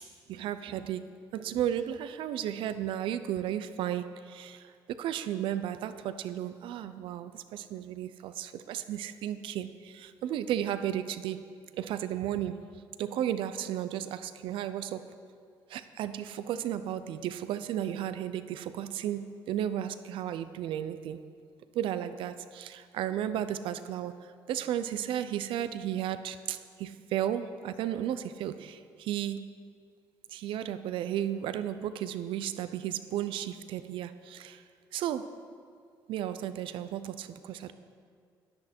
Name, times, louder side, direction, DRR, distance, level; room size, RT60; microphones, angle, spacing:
voice 1, 0.0-11.4 11.8-12.6 13.0-15.1 15.7-21.2 21.7-29.5 30.3-34.6 34.9-35.3 36.1-37.7, right 11 dB, 75° right, 12 dB, 0.7 m, -34 dB
14.5 x 10.5 x 4.4 m, 2.2 s
supercardioid pair, 75°, 9 cm